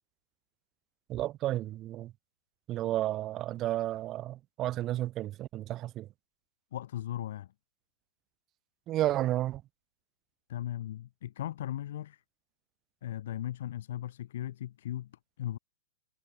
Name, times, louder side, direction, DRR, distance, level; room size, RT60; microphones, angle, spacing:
voice 1, 1.1-2.1 2.7-6.1 8.9-9.6, right 14 dB, 30° right, 3.2 m, -32 dB
voice 2, 6.7-7.5 10.5-12.2 13.0-15.6, left 12 dB, 65° left, 3.9 m, -37 dB
hypercardioid pair, 120°, 0 cm